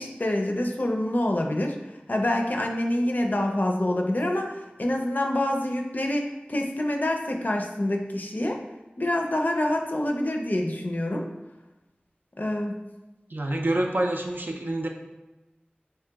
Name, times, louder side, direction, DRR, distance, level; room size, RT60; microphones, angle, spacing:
voice 1, 0.0-1.8 2.1-8.6 9.0-11.3 12.4-12.8, left 1 dB, 55° left, 2 dB, 0.4 m, -26 dB
voice 2, 13.3-14.9, right 1 dB, 65° right, 2 dB, 0.4 m, -27 dB
3.2 x 2.8 x 3.4 m, 1.1 s
wide cardioid pair, 45°, 4 cm